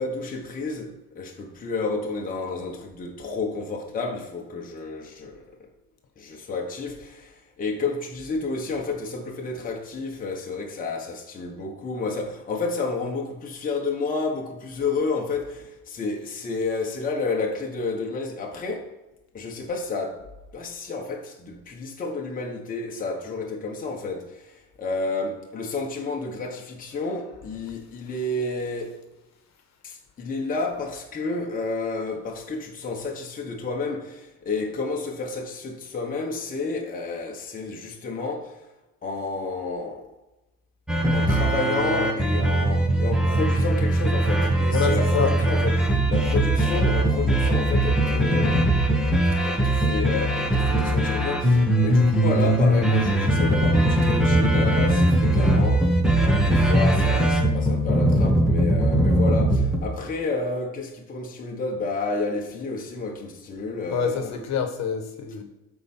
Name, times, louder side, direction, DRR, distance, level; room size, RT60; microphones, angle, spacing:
voice 1, 0.0-5.7 6.2-18.9 19.3-20.3 20.5-24.4 24.8-29.0 29.8-38.6 39.0-40.1 41.1-48.6 49.4-55.9 56.1-64.4, left 3 dB, 25° left, 1.3 m, -30 dB
sound 1, 40.9-59.8, right 1 dB, ahead, 1.1 m, -20 dB
voice 2, 44.7-45.3 63.9-65.4, left 6 dB, 50° left, 1.4 m, -26 dB
13.0 x 4.9 x 4.3 m
cardioid pair, 165°, 34 cm